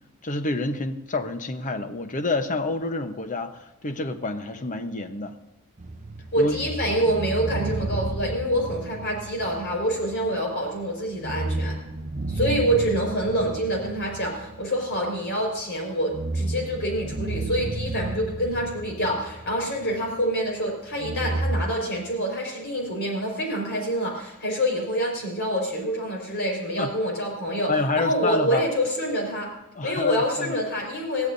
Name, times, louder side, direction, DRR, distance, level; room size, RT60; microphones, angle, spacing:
voice 1, 0.2-5.4 6.4-6.7 26.8-26.9 27.7-28.6 29.8-30.6, left 3 dB, 35° left, 8 dB, 1.0 m, -28 dB
sound 1, 5.8-10.4 10.7-10.9 11.2-15.4 15.9-20.2 21.0-21.6, right 2 dB, 35° right, 0.7 m, -32 dB
voice 2, 6.3-11.7 12.3-29.5 29.8-31.3, equal, 50° left, 1 dB, 4.9 m, -26 dB
21.5 x 15.0 x 2.7 m, 0.98 s
head